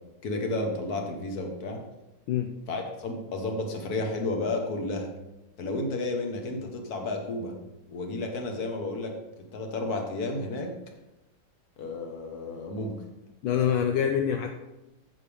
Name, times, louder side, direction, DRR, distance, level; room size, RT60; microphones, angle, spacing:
voice 1, 0.2-1.8 2.7-5.1 5.6-7.6 7.9-9.1 9.5-10.7 11.8-13.0, left 2 dB, 50° left, 3 dB, 1.8 m, -32 dB
voice 2, 13.4-14.5, left 8 dB, 75° left, 4 dB, 1.4 m, -25 dB
10.0 x 8.4 x 3.6 m, 0.98 s
omnidirectional pair, 2.3 m